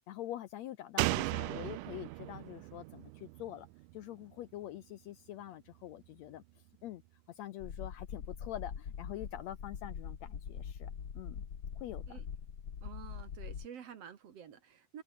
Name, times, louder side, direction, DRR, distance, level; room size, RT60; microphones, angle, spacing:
voice 1, 0.1-3.7 3.9-6.4 6.8-7.0 7.3-11.4 11.7-12.2, left 13 dB, 70° left, 1.7 m, -45 dB
Slam, 1.0-4.5 4.8-4.9, right 19 dB, 80° right, 2.0 m, -37 dB
sound 1, 7.6-13.7, left 7 dB, 40° left, 2.0 m, -43 dB
voice 2, 12.8-15.0, right 8 dB, 55° right, 2.4 m, -50 dB
omnidirectional pair, 3.7 m